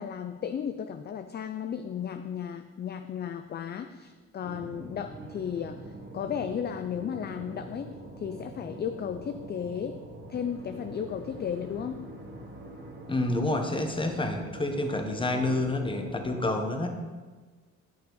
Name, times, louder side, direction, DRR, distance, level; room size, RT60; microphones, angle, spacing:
voice 1, 0.0-5.8 6.1-10.0 10.3-12.1, left 8 dB, 35° left, 8 dB, 0.4 m, -34 dB
sound 1, 4.4-16.5, right 2 dB, 35° right, 1.3 m, -44 dB
voice 2, 13.1-17.0, left 2 dB, 15° left, 4 dB, 1.0 m, -28 dB
8.9 x 5.7 x 3.9 m, 1.4 s
cardioid pair, 90°, 30 cm